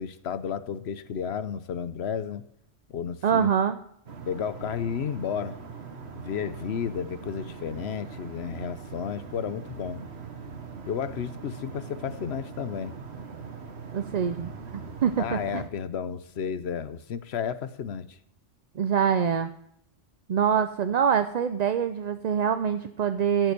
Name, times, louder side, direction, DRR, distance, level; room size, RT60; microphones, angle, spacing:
voice 1, 0.0-2.4 2.9-3.5 4.2-5.6 6.1-10.0 10.9-12.9 15.2-18.1, left 7 dB, 70° left, 13 dB, 1.0 m, -32 dB
voice 2, 3.2-3.8 13.9-15.6 18.8-19.5 20.3-23.5, right 7 dB, 50° right, 10 dB, 0.5 m, -25 dB
sound 1, 4.1-15.7, right 5 dB, 70° right, 1.5 m, -41 dB
13.5 x 7.8 x 6.7 m, 0.75 s
omnidirectional pair, 1.2 m